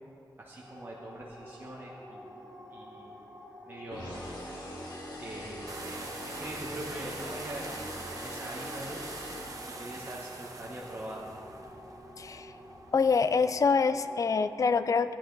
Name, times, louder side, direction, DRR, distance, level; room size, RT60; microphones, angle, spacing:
voice 1, 0.4-2.3 2.7-3.1 3.6-4.3 5.2-9.0 9.7-11.4, right 1 dB, 25° right, -4 dB, 1.2 m, -43 dB
sound 1, 0.6-14.6, equal, 10° right, 2.0 m, -50 dB
sound 2, 3.9-10.1, equal, 75° left, 2.4 m, -43 dB
sound 3, 5.7-13.8, right 3 dB, 50° right, 0.9 m, -44 dB
voice 2, 12.2-12.5 12.9-15.1, left 5 dB, 45° left, 12 dB, 0.4 m, -25 dB
16.0 x 10.5 x 4.0 m, 2.7 s
wide cardioid pair, 170°, 8 cm